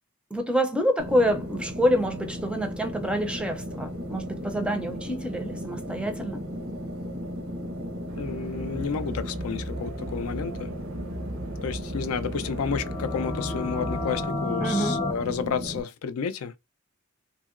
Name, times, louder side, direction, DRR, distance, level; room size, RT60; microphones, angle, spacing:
voice 1, 0.3-6.4 14.6-15.0, equal, 5° right, 0.4 m, -27 dB
sound 1, 1.0-15.8, equal, 90° right, 1.0 m, -36 dB
sound 2, 8.1-14.3, right 1 dB, 65° right, 0.6 m, -37 dB
voice 2, 8.2-10.7 11.6-16.6, left 6 dB, 90° left, 0.4 m, -31 dB
sound 3, 12.6-15.1, left 2 dB, 40° left, 0.7 m, -31 dB
2.8 x 2.7 x 2.4 m
head